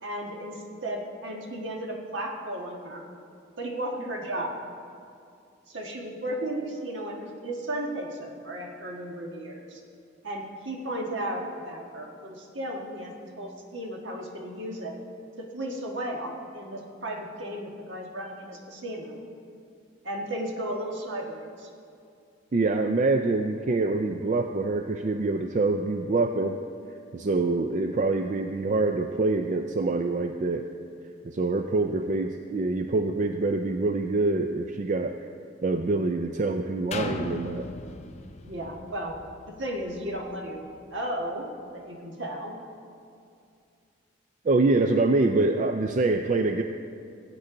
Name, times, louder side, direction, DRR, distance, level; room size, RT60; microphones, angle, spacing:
voice 1, 0.0-3.0 3.6-4.6 5.7-9.8 10.2-14.9 15.4-19.1 20.0-21.7 38.4-39.2 39.6-41.5 41.8-42.5, right 1 dB, 65° right, 0 dB, 1.5 m, -34 dB
voice 2, 22.5-26.6 27.1-30.7 31.2-35.1 35.6-37.7 44.4-46.6, right 3 dB, 40° right, 6 dB, 0.4 m, -25 dB
sound 1, 36.9-40.7 41.2-41.3, left 2 dB, 35° left, 0.5 m, -38 dB
17.0 x 8.5 x 3.8 m, 2.4 s
head